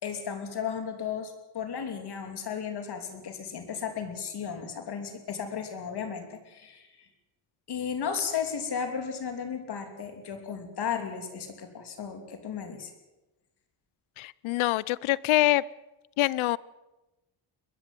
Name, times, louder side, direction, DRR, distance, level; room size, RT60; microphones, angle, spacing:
voice 1, 0.0-7.1 7.7-12.9, left 7 dB, 55° left, 6 dB, 3.1 m, -34 dB
voice 2, 14.2-15.6 16.2-16.6, left 17 dB, 90° left, 22 dB, 0.7 m, -25 dB
21.5 x 14.5 x 9.1 m, 1.0 s
cardioid pair, 125°, 47 cm